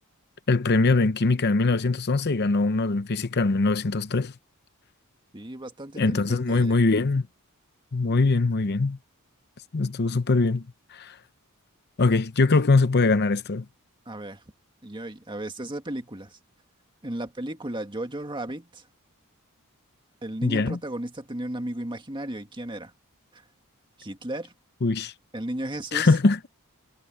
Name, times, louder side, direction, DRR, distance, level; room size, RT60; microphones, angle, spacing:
voice 1, 0.5-4.3 6.0-7.2 7.9-9.0 9.7-10.6 10.9-11.1 12.0-13.6 20.4-20.8 24.8-25.1 25.9-26.4, left 3 dB, 50° left, 0.8 m, -22 dB
voice 2, 5.3-6.8 14.1-14.4 14.8-16.4 17.0-18.9 20.2-22.9 23.3-23.4 24.0-24.5 25.3-26.2, right 1 dB, 20° right, 2.0 m, -35 dB
head